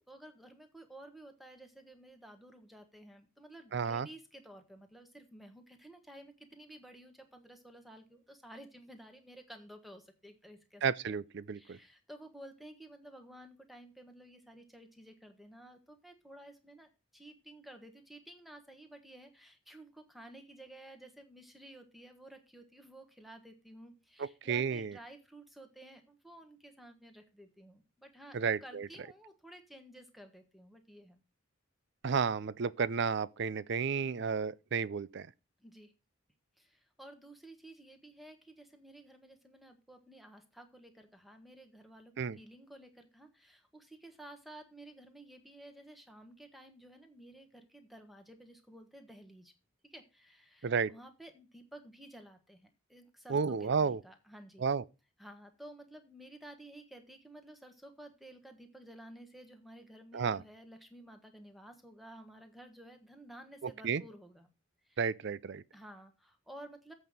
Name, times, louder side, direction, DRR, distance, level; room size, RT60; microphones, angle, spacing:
voice 1, 0.0-11.2 11.5-31.2 35.6-35.9 36.6-49.5 49.8-54.6 55.2-64.5 64.8-65.0 65.7-66.9, right 1 dB, ahead, 1.4 m, -53 dB
voice 2, 3.7-4.1 10.8-11.8 24.5-24.9 28.3-28.9 32.0-35.3 42.2-42.4 50.6-50.9 53.3-54.0 54.6-54.8 60.1-60.4 63.8-64.0 65.0-65.6, right 6 dB, 55° right, 0.4 m, -32 dB
8.1 x 5.4 x 6.4 m
head